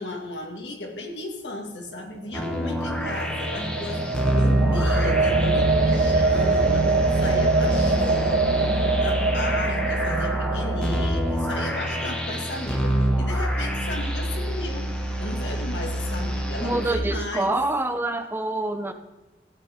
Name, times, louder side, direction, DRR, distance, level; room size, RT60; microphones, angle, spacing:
voice 1, 0.0-4.0 4.3-8.7 9.0-14.9 15.2-17.5, left 2 dB, 85° left, 2 dB, 2.0 m, -34 dB
sound 1, 2.3-17.0, equal, 5° left, 1.6 m, -26 dB
sound 2, 2.4-12.6, right 3 dB, 55° right, 1.2 m, -24 dB
voice 2, 16.6-18.9, right 2 dB, 15° right, 8 dB, 0.7 m, -26 dB
13.5 x 9.1 x 3.6 m, 1.1 s
head